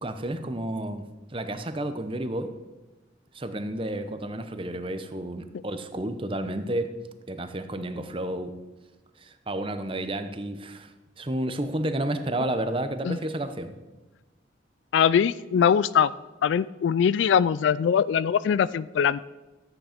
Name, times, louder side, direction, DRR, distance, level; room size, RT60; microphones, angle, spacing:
voice 1, 0.0-2.5 3.3-6.9 7.3-8.5 9.2-13.8, right 1 dB, 30° right, 9 dB, 0.8 m, -31 dB
voice 2, 14.9-16.1 16.4-19.2, left 7 dB, 80° left, 18 dB, 0.3 m, -22 dB
13.0 x 9.0 x 5.1 m, 1.1 s
head